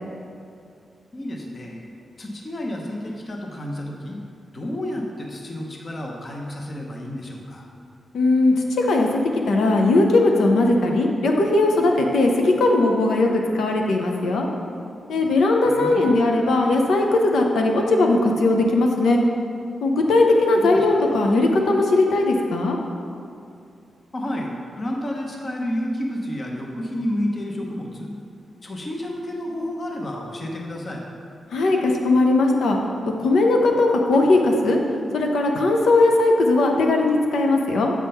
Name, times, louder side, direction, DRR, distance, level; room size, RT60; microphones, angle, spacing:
voice 1, 1.1-1.9 2.2-4.2 4.5-7.6 15.6-16.1 20.6-20.9 24.1-28.1 28.6-31.0, left 1 dB, 30° left, 0 dB, 0.7 m, -30 dB
voice 2, 8.1-9.1 9.3-13.3 13.5-14.5 15.1-19.2 19.8-22.8 31.5-32.8 33.2-34.8 35.1-37.9, left 2 dB, 85° left, 1 dB, 0.7 m, -19 dB
7.5 x 3.6 x 5.6 m, 2.5 s
wide cardioid pair, 175°, 0 cm